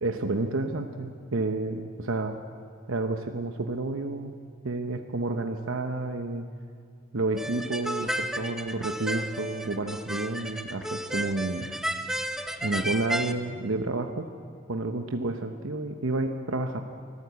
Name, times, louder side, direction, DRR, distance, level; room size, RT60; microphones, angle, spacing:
voice 1, 0.0-2.4 2.9-4.4 4.6-6.5 7.1-11.7 12.6-14.3 14.7-16.8, right 2 dB, 90° right, 6 dB, 1.0 m, -30 dB
sound 1, 7.4-13.3, equal, ahead, 0.6 m, -33 dB
24.5 x 14.5 x 8.3 m, 2.2 s
head